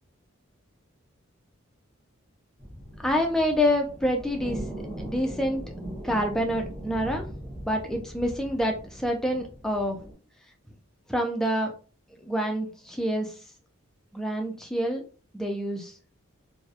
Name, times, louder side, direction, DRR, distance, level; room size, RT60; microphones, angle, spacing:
sound 1, 2.6-10.1, right 1 dB, 35° right, 0.8 m, -39 dB
voice 1, 3.0-4.6 5.0-5.6 6.0-7.3 7.7-10.0 11.1-11.7 12.2-13.3 14.1-15.0 15.3-15.9, equal, ahead, 2 dB, 0.3 m, -27 dB
2.2 x 2.0 x 2.7 m, 0.37 s
head